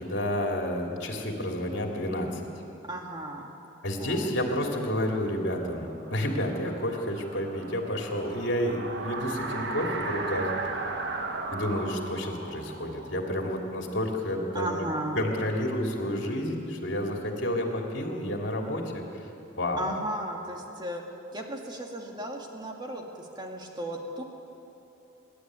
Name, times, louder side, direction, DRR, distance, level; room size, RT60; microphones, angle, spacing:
voice 1, 0.0-2.4 3.8-10.5 11.5-14.7 15.1-19.3 19.6-19.9, left 1 dB, 65° left, 1 dB, 3.0 m, -30 dB
voice 2, 2.9-3.4 4.0-4.3 14.5-15.2 19.8-21.0 21.3-24.2, right 1 dB, 20° right, 1 dB, 2.1 m, -35 dB
sound 1, 5.8-14.5, right 3 dB, 55° right, 1.6 m, -37 dB
24.0 x 12.0 x 9.7 m, 3.0 s
head